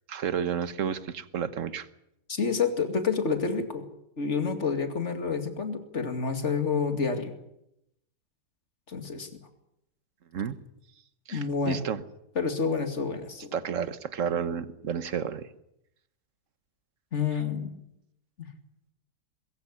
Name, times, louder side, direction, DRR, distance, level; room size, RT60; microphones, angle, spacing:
voice 1, 0.1-1.9 10.3-10.6 11.3-12.0 13.5-15.5, right 7 dB, 50° right, 13 dB, 1.5 m, -31 dB
voice 2, 2.3-3.9 4.2-7.3 8.9-9.3 11.3-11.8 12.4-13.5 17.1-17.8 18.4-18.5, left 5 dB, 45° left, 7 dB, 2.6 m, -28 dB
22.0 x 15.0 x 9.9 m, 0.81 s
omnidirectional pair, 1.8 m